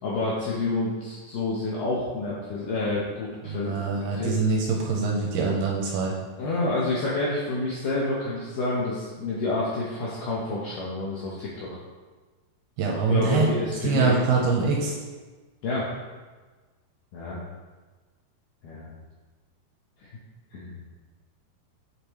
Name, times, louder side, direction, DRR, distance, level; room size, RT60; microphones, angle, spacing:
voice 1, 0.0-3.8 4.1-4.3 6.4-11.7 12.9-14.1 15.6-15.9 17.1-17.4 18.6-18.9 20.0-20.1 20.5-20.8, left 2 dB, 75° left, -6 dB, 2.0 m, -28 dB
voice 2, 3.5-6.1 12.8-13.5 13.8-15.0, right 4 dB, 80° right, -1 dB, 2.5 m, -24 dB
8.3 x 5.3 x 3.1 m, 1.3 s
omnidirectional pair, 5.1 m